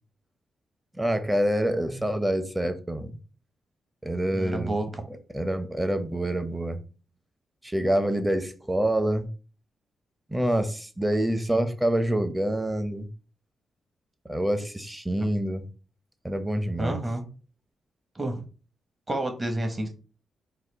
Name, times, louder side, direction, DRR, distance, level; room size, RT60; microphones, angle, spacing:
voice 1, 1.0-3.1 4.0-4.8 5.3-6.8 7.6-9.3 10.3-13.1 14.3-15.6 16.2-17.0, right 1 dB, 10° right, 0.8 m, -26 dB
voice 2, 4.3-4.8 11.5-11.6 16.8-17.2 18.1-18.4 19.1-19.9, right 1 dB, 30° right, 1.2 m, -29 dB
4.2 x 2.4 x 4.0 m
cardioid pair, 65°, 0 cm